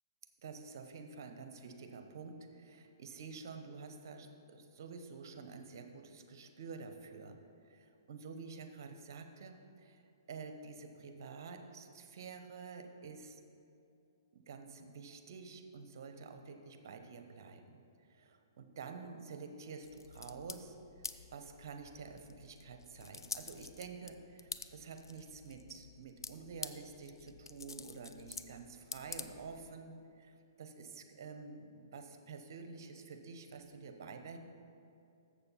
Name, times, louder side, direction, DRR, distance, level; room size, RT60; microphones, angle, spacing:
voice 1, 0.4-7.4 7.6-10.0 10.3-13.4 14.3-17.8 18.1-34.4, right 5 dB, 60° right, 6 dB, 0.8 m, -49 dB
sound 1, 19.8-29.8, left 4 dB, 90° left, 0.4 m, -49 dB
7.2 x 6.7 x 5.6 m, 2.6 s
hypercardioid pair, 135°, 2 cm